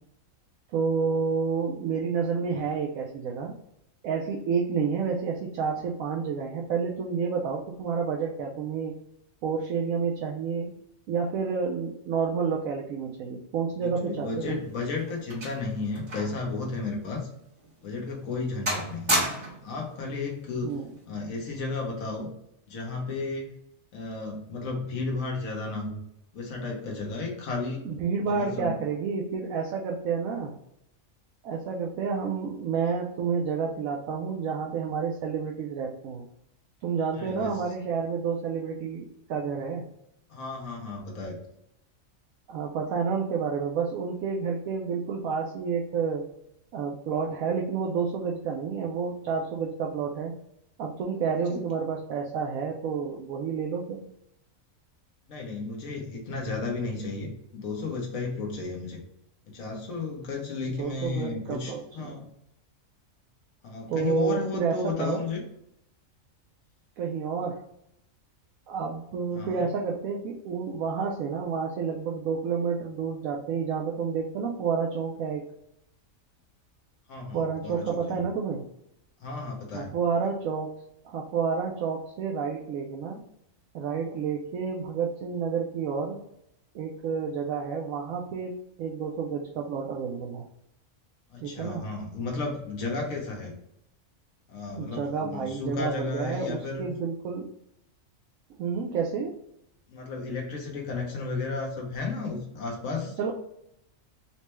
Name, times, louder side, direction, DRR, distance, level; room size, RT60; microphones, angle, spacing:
voice 1, 0.7-3.5 4.0-8.9 9.4-10.7 11.1-14.6 20.6-20.9 27.8-30.5 31.4-36.3 36.8-39.9 42.5-46.3 46.7-50.3 50.8-54.0 60.7-62.3 63.9-65.2 67.0-67.6 68.7-75.5 77.3-78.6 79.7-80.7 81.0-83.2 83.7-86.2 86.7-90.5 91.4-91.8 94.8-97.5 98.6-99.3 103.2-103.3, right 6 dB, 85° right, 0 dB, 1.0 m, -30 dB
voice 2, 14.0-17.3 17.8-19.2 19.6-20.7 21.1-22.3 22.7-23.5 23.9-26.0 26.3-27.9 28.2-28.7 37.1-37.5 40.3-41.4 51.5-51.6 55.3-59.0 59.5-62.3 63.6-65.4 69.3-69.7 77.1-78.2 79.2-79.9 91.3-93.5 94.5-96.9 99.9-103.2, left 3 dB, 85° left, 0 dB, 1.3 m, -33 dB
sound 1, 14.3-16.5 16.8-16.9 17.6-17.7 18.1-18.4 18.7-19.7 20.7-21.0, equal, 60° right, 1.8 m, -31 dB
4.1 x 2.2 x 3.0 m, 0.77 s
omnidirectional pair, 1.4 m